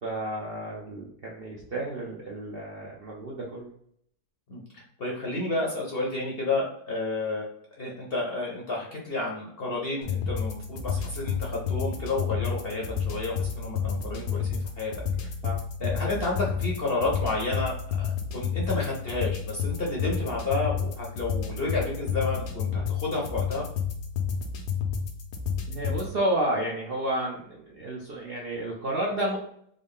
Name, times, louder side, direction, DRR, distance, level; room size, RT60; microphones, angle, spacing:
voice 1, 0.0-3.6 14.1-14.3 15.4-15.6 25.7-29.4, right 1 dB, 60° right, -3 dB, 0.6 m, -31 dB
voice 2, 4.5-7.5 7.8-14.9 15.2-15.3 15.8-23.7, left 2 dB, 50° left, -3 dB, 0.7 m, -31 dB
sound 1, 10.0-26.1, left 6 dB, 90° left, 1.2 m, -30 dB
3.8 x 2.0 x 3.5 m, 0.67 s
omnidirectional pair, 1.7 m